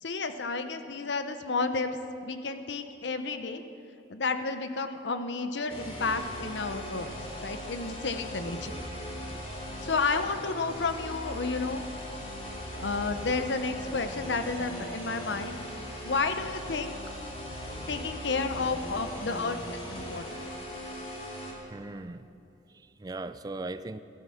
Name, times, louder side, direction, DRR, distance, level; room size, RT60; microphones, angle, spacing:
voice 1, 0.0-1.9 2.2-3.6 4.1-8.7 9.8-11.9 12.8-15.6 16.0-16.9 17.9-20.4, left 4 dB, 85° left, 9 dB, 0.8 m, -31 dB
sound 1, 5.7-21.5, equal, 35° left, 2.9 m, -39 dB
voice 2, 21.7-22.3 22.7-24.0, right 2 dB, 20° right, 13 dB, 0.4 m, -38 dB
14.0 x 13.0 x 6.4 m, 2.6 s
head